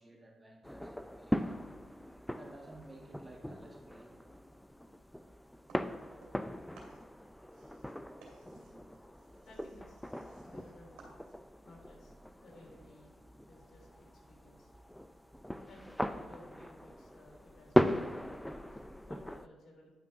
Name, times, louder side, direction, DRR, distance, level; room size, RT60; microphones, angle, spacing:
voice 1, 0.0-1.6 2.2-4.1 8.4-8.6, right 2 dB, 20° right, 1 dB, 1.4 m, -55 dB
sound 1, 0.6-19.5, equal, 5° left, 0.5 m, -39 dB
sound 2, 5.7-6.5 6.7-11.6, right 3 dB, 80° right, 2.4 m, -60 dB
voice 2, 9.1-10.0 10.4-10.9 11.6-13.2 13.5-15.1 15.7-19.9, left 2 dB, 60° left, -1 dB, 3.1 m, -59 dB
10.0 x 5.6 x 4.1 m, 1.2 s
supercardioid pair, 55°, 0 cm